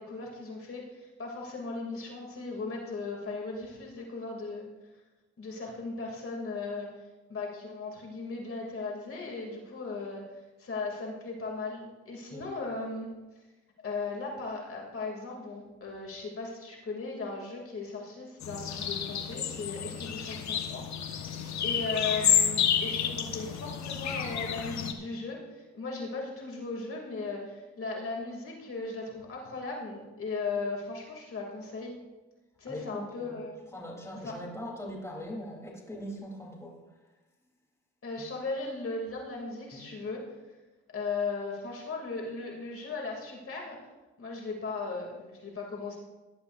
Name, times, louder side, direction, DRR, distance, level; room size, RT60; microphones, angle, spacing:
voice 1, 0.0-4.7 5.4-6.9 7.3-10.2 10.6-13.1 13.8-20.8 21.1-32.0 32.6-33.6 34.2-34.3 38.0-40.2 40.9-43.8 44.2-46.0, left 3 dB, 45° left, -1 dB, 2.8 m, -37 dB
sound 1, 18.4-24.9, left 8 dB, 65° left, 1.4 m, -30 dB
voice 2, 32.7-33.4 33.7-36.8 39.7-40.0, left 1 dB, 10° left, -2 dB, 3.5 m, -41 dB
19.0 x 11.5 x 2.6 m, 1.2 s
cardioid pair, 90°, 30 cm